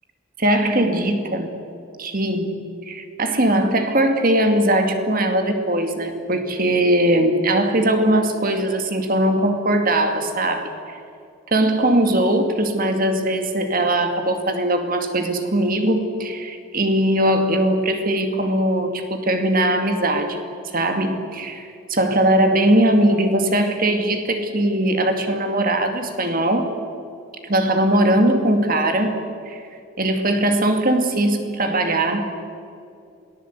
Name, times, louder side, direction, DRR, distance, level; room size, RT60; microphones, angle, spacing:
voice 1, 0.4-1.5 2.0-11.0 11.5-20.4 20.7-26.7 27.4-29.2 29.5-29.6 30.0-32.4, right 1 dB, 40° right, 6 dB, 2.3 m, -20 dB
27.5 x 19.0 x 8.2 m, 2.5 s
head